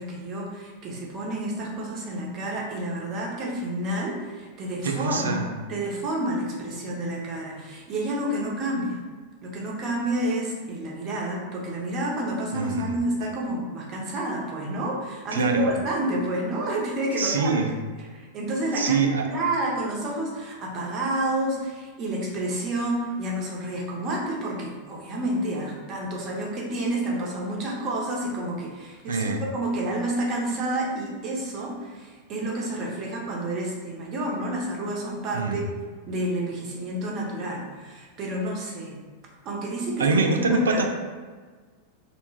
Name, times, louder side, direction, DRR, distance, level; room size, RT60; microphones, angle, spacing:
voice 1, 0.0-5.4 5.7-9.0 9.4-17.6 18.1-29.2 29.5-35.7 36.1-39.0 39.4-40.8, right 1 dB, 35° right, -2 dB, 0.6 m, -29 dB
voice 2, 4.8-5.5 12.5-12.9 15.3-15.7 17.2-17.7 18.8-19.3 29.1-29.4 35.3-35.7 40.0-40.8, right 4 dB, 70° right, 4 dB, 0.3 m, -24 dB
2.5 x 2.2 x 3.1 m, 1.4 s
figure-of-eight pair, 90°, 0 cm